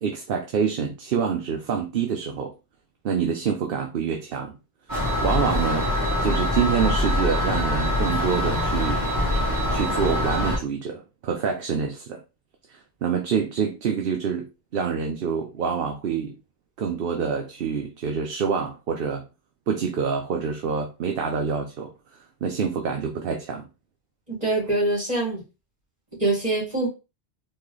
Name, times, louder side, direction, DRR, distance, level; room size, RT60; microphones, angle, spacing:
voice 1, 0.0-2.5 3.0-4.5 5.2-5.9 6.2-9.0 9.7-12.2 12.7-14.5 14.7-16.4 16.8-19.3 19.7-21.9 22.4-23.7, right 6 dB, 60° right, 0.8 m, -26 dB
sound 1, 4.9-10.6, left 1 dB, 15° right, 1.7 m, -24 dB
voice 2, 24.3-25.4 26.2-26.9, right 2 dB, 35° right, 2.4 m, -24 dB
4.2 x 3.2 x 3.1 m
omnidirectional pair, 1.1 m